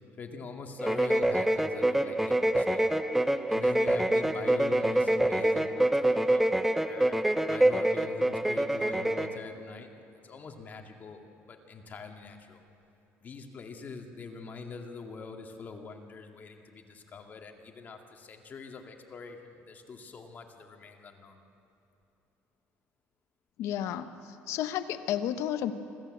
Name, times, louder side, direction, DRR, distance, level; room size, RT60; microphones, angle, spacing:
voice 1, 0.2-3.0 3.5-7.2 7.5-9.9 10.2-12.6 13.2-21.4, left 4 dB, 35° left, 4 dB, 2.2 m, -43 dB
sound 1, 0.8-9.4, right 1 dB, 5° right, 0.7 m, -26 dB
voice 2, 23.6-24.1 24.5-25.7, left 11 dB, 70° left, 9 dB, 1.1 m, -31 dB
25.5 x 14.5 x 7.9 m, 2.9 s
cardioid pair, 120°, 5 cm